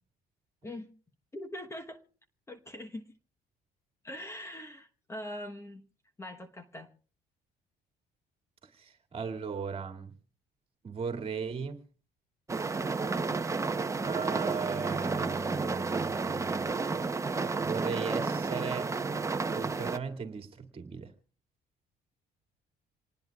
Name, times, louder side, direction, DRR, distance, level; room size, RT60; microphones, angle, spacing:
voice 1, 1.3-2.0 2.5-3.0 4.0-5.8 6.2-6.9, left 1 dB, 15° left, 1.1 m, -42 dB
voice 2, 8.6-10.1 10.8-11.8 14.0-16.7 17.6-18.9 19.5-21.1, right 5 dB, 35° right, 2.4 m, -37 dB
sound 1, 12.5-20.0, right 4 dB, 15° right, 0.8 m, -31 dB
27.0 x 19.5 x 2.4 m
cardioid pair, 110°, 17 cm